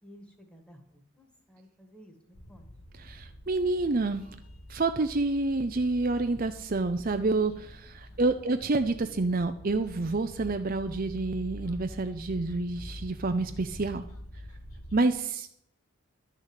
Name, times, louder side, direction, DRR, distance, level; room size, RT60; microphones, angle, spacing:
voice 1, 0.0-2.7 8.1-8.2, equal, 5° left, 5 dB, 1.7 m, -54 dB
sound 1, 2.3-15.0, left 1 dB, 75° left, 1.5 m, -46 dB
voice 2, 2.9-4.4 4.7-14.0 14.9-15.5, right 3 dB, 40° right, 8 dB, 0.6 m, -28 dB
11.5 x 6.6 x 9.0 m, 0.73 s
head